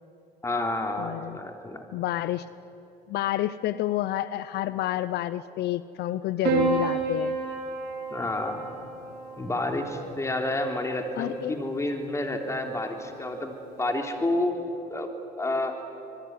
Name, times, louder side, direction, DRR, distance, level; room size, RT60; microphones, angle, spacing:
voice 1, 0.4-1.9 8.1-8.6 9.4-14.6 14.9-15.1 15.4-15.7, left 2 dB, 15° left, 3 dB, 3.3 m, -29 dB
voice 2, 1.0-1.4 1.9-2.5 3.1-7.4 11.2-11.6, left 13 dB, 75° left, 15 dB, 0.6 m, -29 dB
Piano, 6.4-10.9 12.1-12.8, right 4 dB, 85° right, 5.7 m, -31 dB
26.0 x 21.0 x 9.6 m, 3.0 s
cardioid pair, 110°, 17 cm